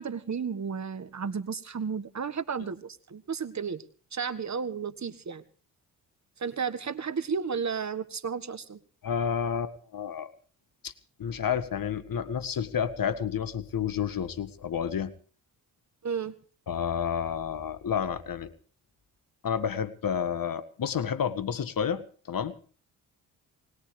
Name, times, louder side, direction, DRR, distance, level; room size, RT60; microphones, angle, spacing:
voice 1, 0.0-3.8 4.1-5.4 6.4-8.8 16.0-16.3, right 6 dB, 40° right, 13 dB, 1.7 m, -33 dB
voice 2, 9.0-10.3 10.8-10.9 11.2-15.1 16.7-18.5 19.4-22.6, left 7 dB, 50° left, 14 dB, 1.7 m, -30 dB
20.5 x 20.5 x 3.4 m, 0.41 s
hypercardioid pair, 45°, 43 cm